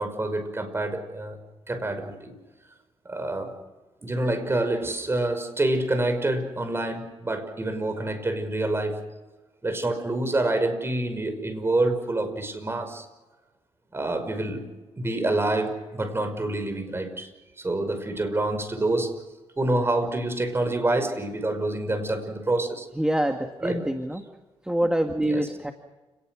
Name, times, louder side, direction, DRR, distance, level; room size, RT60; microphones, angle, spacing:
voice 1, 0.0-1.4 1.7-2.4 3.1-3.5 4.0-9.0 9.6-13.1 13.9-14.7 15.0-17.3 17.6-19.1 19.6-22.9 23.6-23.8 25.3-25.5, right 2 dB, 25° right, 8 dB, 5.5 m, -27 dB
voice 2, 22.9-24.2 24.6-25.7, right 1 dB, 5° right, 4 dB, 2.0 m, -25 dB
29.5 x 19.5 x 6.4 m, 1.1 s
cardioid pair, 90°, 11 cm